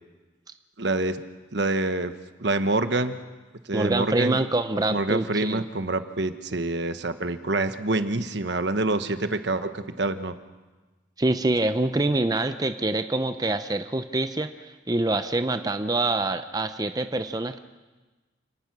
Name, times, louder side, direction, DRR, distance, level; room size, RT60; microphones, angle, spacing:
voice 1, 0.8-1.2 1.5-2.1 2.4-3.2 3.7-4.4 4.9-10.3, right 2 dB, 65° right, 9 dB, 1.2 m, -26 dB
voice 2, 3.7-5.6 11.2-17.6, right 2 dB, 20° right, 9 dB, 0.6 m, -25 dB
28.5 x 19.0 x 6.1 m, 1.2 s
head